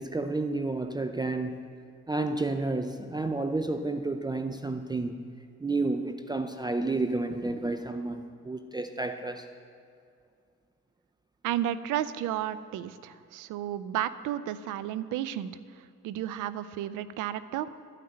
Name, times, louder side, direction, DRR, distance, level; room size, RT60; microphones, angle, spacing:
voice 1, 0.0-1.6 2.1-5.2 5.6-9.5, right 2 dB, 15° right, 7 dB, 0.4 m, -31 dB
voice 2, 11.4-15.5 16.0-17.7, right 11 dB, 90° right, 15 dB, 0.5 m, -32 dB
12.0 x 5.8 x 7.7 m, 2.3 s
cardioid pair, 90°, 30 cm